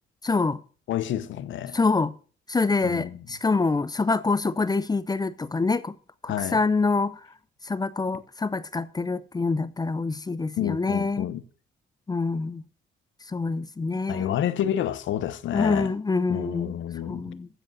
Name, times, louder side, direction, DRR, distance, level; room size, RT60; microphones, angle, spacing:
voice 1, 0.2-0.6 1.7-2.1 2.5-5.9 6.2-7.2 7.6-11.3 12.1-12.6 13.3-14.4 15.5-16.8 17.1-17.5, left 3 dB, 20° left, 0.6 m, -26 dB
voice 2, 0.9-1.8 2.8-3.2 6.3-6.6 10.6-11.4 14.1-15.9 16.3-17.2, left 11 dB, 75° left, 0.9 m, -29 dB
15.0 x 5.1 x 6.3 m
cardioid pair, 90°, 20 cm